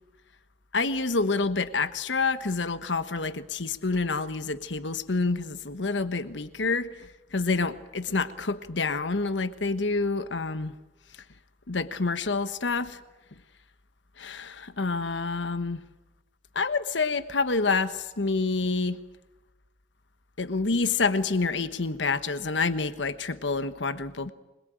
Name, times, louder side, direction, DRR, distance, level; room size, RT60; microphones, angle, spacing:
voice 1, 0.7-6.9 7.3-10.7 11.7-13.0 14.2-15.8 16.5-19.0 20.4-24.3, left 3 dB, 90° left, 1.2 m, -28 dB
26.0 x 22.0 x 9.1 m
head